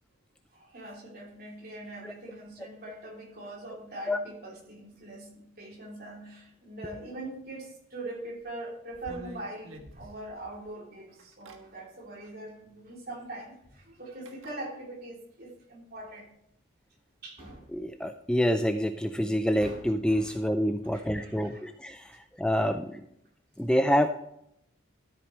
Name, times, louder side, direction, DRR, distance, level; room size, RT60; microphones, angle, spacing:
voice 1, 0.5-16.3 17.2-17.4 20.3-20.4 20.8-21.7 22.1-22.2, right 1 dB, 45° right, -2 dB, 3.3 m, -42 dB
sound 1, 8.4-8.5 8.9-10.7 11.2-11.6 12.9-13.0 14.3-14.6, equal, 80° right, 1.5 m, -47 dB
sound 2, 16.0-16.1 17.1-17.9 18.9-19.0 19.6-20.6, right 1 dB, 30° right, 4.9 m, -48 dB
voice 2, 17.7-23.0 23.6-24.1, equal, 5° left, 7 dB, 0.4 m, -27 dB
13.0 x 8.5 x 3.2 m, 0.74 s
head